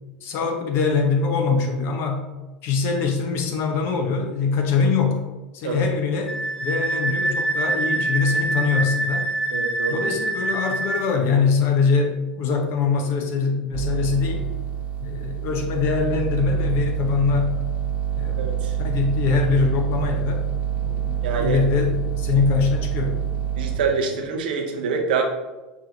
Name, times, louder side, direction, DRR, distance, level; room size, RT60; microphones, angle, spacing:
voice 1, 0.2-2.3 2.6-5.3 5.5-6.4 6.6-9.3 9.9-14.4 15.0-17.5 18.2-20.5 20.8-23.2, left 5 dB, 50° left, 3 dB, 0.8 m, -23 dB
Wind instrument woodwind instrument, 6.3-11.0, right 2 dB, 15° left, 0.7 m, -25 dB
voice 2, 9.5-10.1 18.4-18.8 21.2-21.6 23.6-25.2, right 5 dB, 70° right, 2 dB, 0.7 m, -25 dB
sound 1, 13.7-23.8, right 9 dB, 40° right, 0.8 m, -26 dB
5.9 x 3.0 x 2.6 m, 1.1 s
hypercardioid pair, 80°, 5 cm